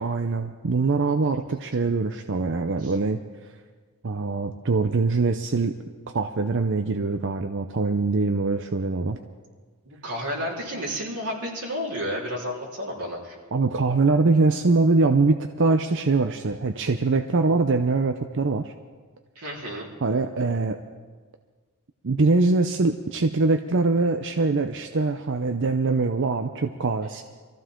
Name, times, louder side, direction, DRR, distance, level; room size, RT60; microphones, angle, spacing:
voice 1, 0.0-3.2 4.0-5.7 6.1-9.2 13.5-18.7 20.0-20.8 22.0-27.2, right 3 dB, 55° right, 7 dB, 0.6 m, -23 dB
voice 2, 9.9-13.4 19.4-19.9, equal, 90° right, -4 dB, 4.0 m, -31 dB
23.5 x 14.5 x 3.8 m, 1.5 s
head